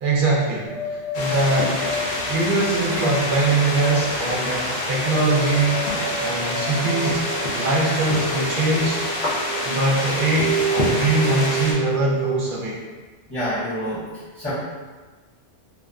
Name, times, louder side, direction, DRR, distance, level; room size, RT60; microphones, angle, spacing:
voice 1, 0.0-1.9 2.3-5.8 6.2-7.3 7.6-9.0 9.6-12.8, right 2 dB, 60° right, -5 dB, 0.7 m, -22 dB
sound 1, 0.7-12.4, right 3 dB, 85° left, 0.9 m, -30 dB
sound 2, 1.1-11.7, left 1 dB, 55° left, 0.6 m, -27 dB
voice 2, 13.3-14.1 14.3-14.5, equal, 15° left, -15 dB, 0.5 m, -27 dB
2.6 x 2.1 x 2.3 m, 1.4 s
omnidirectional pair, 1.1 m